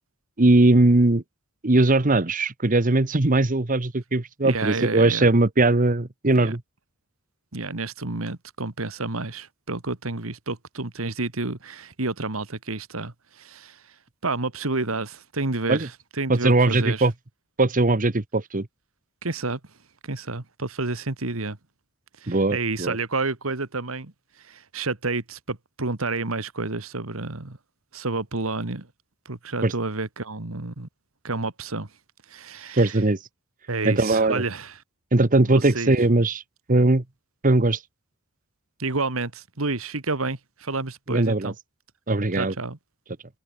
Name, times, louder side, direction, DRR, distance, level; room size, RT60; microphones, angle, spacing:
voice 1, 0.4-1.2 1.6-6.6 15.7-15.9 16.3-17.1 17.6-18.7 22.3-23.0 29.6-29.7 32.8-33.2 33.8-34.4 35.1-36.4 36.7-37.0 37.4-37.8 41.1-41.5 42.1-42.5, right 2 dB, 40° right, 1.2 m, -20 dB
voice 2, 4.4-5.3 6.2-6.5 7.5-13.8 14.2-15.9 16.2-17.1 19.2-19.6 20.0-21.6 22.2-24.1 24.4-27.6 27.9-28.9 29.3-30.9 31.2-31.9 32.3-33.0 33.7-34.7 35.5-35.9 36.7-36.9 38.8-41.6 42.3-42.8, right 3 dB, 85° right, 2.0 m, -30 dB
head